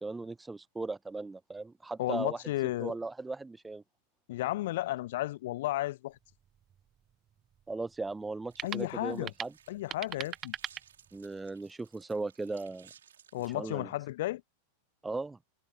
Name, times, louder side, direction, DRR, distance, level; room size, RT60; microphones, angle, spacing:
voice 1, 0.0-2.4 2.8-3.8 7.7-9.5 11.1-12.9 13.5-13.9 15.0-15.4, right 3 dB, 10° right, 0.6 m, -37 dB
voice 2, 2.0-3.0 4.3-6.2 8.6-9.3 9.7-10.5 13.3-14.4, left 16 dB, 55° left, 0.5 m, -33 dB
sound 1, 6.1-11.5, right 9 dB, 25° right, 1.2 m, -44 dB
sound 2, 8.5-13.5, right 9 dB, 65° right, 6.2 m, -61 dB
figure-of-eight pair, 90°, 0 cm